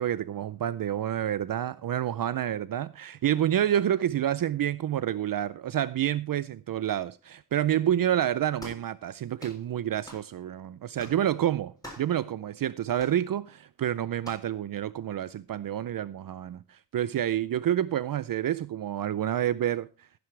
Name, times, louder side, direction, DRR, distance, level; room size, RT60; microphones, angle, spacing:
voice 1, 0.0-20.1, right 11 dB, 65° right, 0.5 m, -28 dB
sound 1, 8.6-8.9 9.4-9.6 10.1-10.3 11.0-11.2 11.8-12.1 13.0-13.2 14.2-14.5, equal, 10° left, 7.0 m, -45 dB
16.0 x 9.5 x 3.2 m
wide cardioid pair, 105°, 37 cm